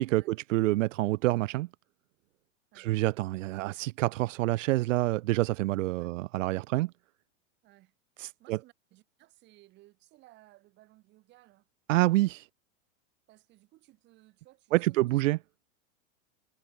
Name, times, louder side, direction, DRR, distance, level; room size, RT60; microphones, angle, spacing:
voice 1, 0.0-1.7 2.8-6.9 8.2-8.6 11.9-12.5 14.7-15.4, right 18 dB, 85° right, 0.5 m, -27 dB
voice 2, 7.6-8.0 8.4-11.7 13.3-15.2, right 18 dB, 30° right, 6.8 m, -60 dB
supercardioid pair, 170°, 37 cm